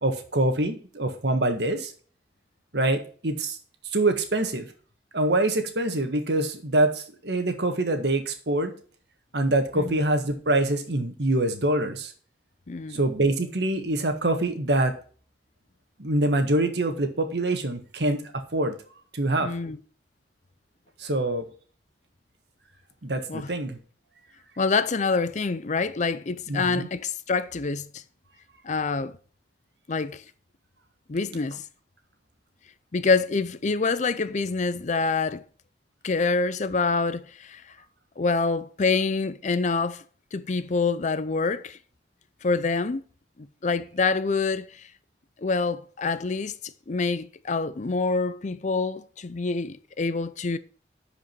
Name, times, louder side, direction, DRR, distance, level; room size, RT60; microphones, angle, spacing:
voice 1, 0.0-1.9 2.7-3.6 3.9-4.7 5.1-8.7 9.3-12.1 12.9-14.9 16.0-18.2 18.5-18.7 19.1-19.5 21.0-21.5 23.0-23.8 26.5-26.9, right 1 dB, 65° right, 1.6 m, -25 dB
voice 2, 12.7-13.0 19.4-19.8 23.3-23.5 24.6-27.9 28.6-29.2 29.9-30.2 31.1-31.6 32.9-35.4 36.0-37.6 38.2-40.0 40.3-41.8 42.4-43.0 43.4-44.8 45.4-46.5 46.9-50.6, left 4 dB, 45° left, 0.6 m, -26 dB
11.0 x 5.1 x 4.6 m
head